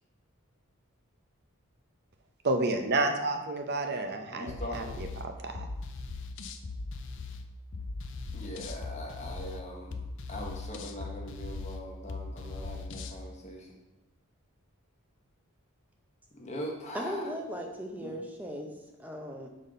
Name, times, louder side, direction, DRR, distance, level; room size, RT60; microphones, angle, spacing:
voice 1, 2.4-5.6, right 2 dB, 50° right, 5 dB, 0.7 m, -30 dB
voice 2, 4.2-5.1 8.3-13.8 16.3-17.3 18.0-18.1, left 1 dB, 30° left, -1 dB, 1.1 m, -41 dB
sound 1, 4.5-13.2, left 3 dB, 55° left, 0.5 m, -40 dB
voice 3, 16.9-18.7 19.0-19.5, equal, 10° right, 1 dB, 0.7 m, -37 dB
5.5 x 4.2 x 5.1 m, 0.99 s
head